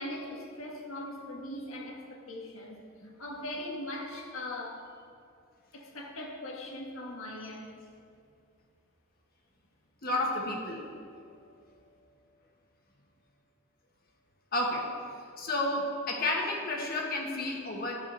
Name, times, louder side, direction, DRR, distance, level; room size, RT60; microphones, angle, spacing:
voice 1, 0.0-4.9 5.7-7.8, left 1 dB, 85° left, 0 dB, 1.7 m, -40 dB
voice 2, 10.0-10.8 14.5-14.9 15.4-17.9, left 2 dB, 45° left, -1 dB, 1.5 m, -31 dB
12.0 x 8.4 x 4.0 m, 2.4 s
head